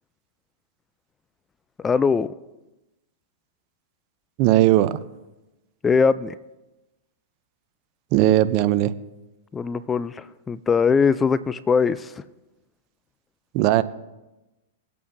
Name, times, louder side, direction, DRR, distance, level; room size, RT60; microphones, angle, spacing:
voice 1, 1.8-2.3 5.8-6.3 9.5-12.1, left 5 dB, 15° left, 16 dB, 0.3 m, -21 dB
voice 2, 4.4-5.0 8.1-8.9 13.5-13.8, right 14 dB, 45° right, 14 dB, 0.6 m, -18 dB
23.0 x 8.5 x 2.7 m, 1.0 s
hypercardioid pair, 125°, 0 cm